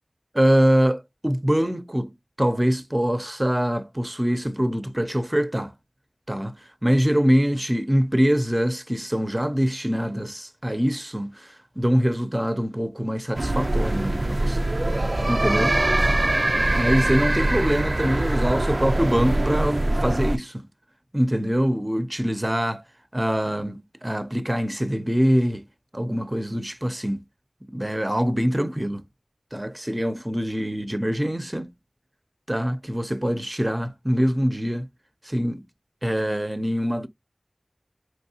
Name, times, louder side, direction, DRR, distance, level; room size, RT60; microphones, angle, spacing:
voice 1, 0.3-2.1 2.4-5.7 6.3-14.7 15.3-15.8 16.8-20.7 21.1-22.8 23.1-25.6 25.9-27.2 27.7-29.0 29.5-31.7 32.5-34.9 35.2-35.6 36.0-37.1, equal, 20° right, 0.7 m, -24 dB
sound 1, 13.3-20.4, right 1 dB, 55° right, 0.4 m, -23 dB
4.5 x 3.1 x 2.9 m
wide cardioid pair, 40°, 0 cm